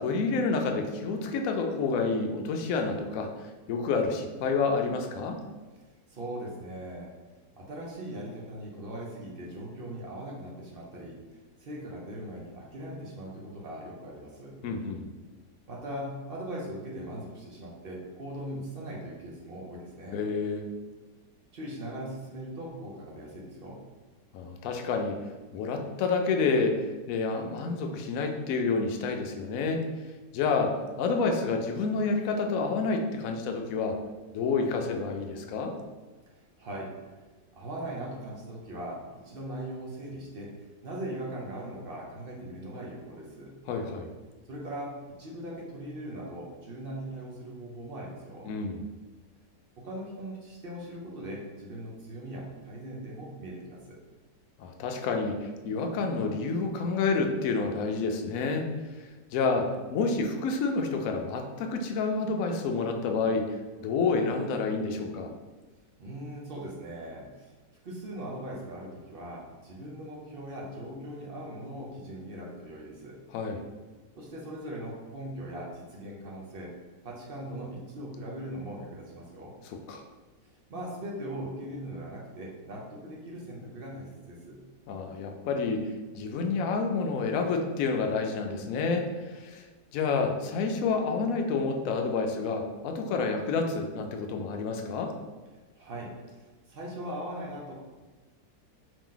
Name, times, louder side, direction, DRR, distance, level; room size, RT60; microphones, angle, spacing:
voice 1, 0.0-5.4 14.6-15.0 20.1-20.6 24.3-25.2 25.5-29.8 30.3-34.0 34.3-35.7 43.7-44.1 48.5-48.8 54.6-58.7 58.9-59.1 59.3-65.3 73.3-73.6 79.9-80.0 84.9-85.9 86.1-89.7 89.9-95.1, left 4 dB, 70° left, 4 dB, 0.9 m, -29 dB
voice 2, 6.1-7.1 7.6-14.6 15.7-20.2 21.5-23.8 36.3-36.9 37.5-40.5 40.8-43.6 44.5-48.5 49.8-54.0 66.0-67.5 67.8-73.2 74.2-76.7 77.0-79.5 80.7-84.6 95.8-97.7, right 1 dB, 50° right, -3 dB, 0.7 m, -40 dB
4.7 x 2.9 x 3.8 m, 1.3 s
omnidirectional pair, 1.8 m